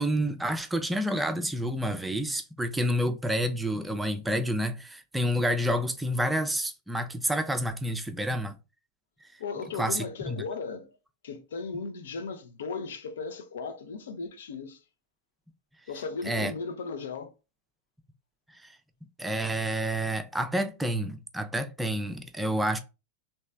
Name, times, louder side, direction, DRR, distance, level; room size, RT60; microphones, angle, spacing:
voice 1, 0.0-8.6 9.8-10.4 16.3-16.5 18.5-18.7 19.2-22.8, equal, 5° right, 0.5 m, -29 dB
voice 2, 9.4-10.9 11.2-14.8 15.9-17.3, left 4 dB, 60° left, 0.6 m, -36 dB
3.2 x 2.9 x 3.3 m
figure-of-eight pair, 90°, 0 cm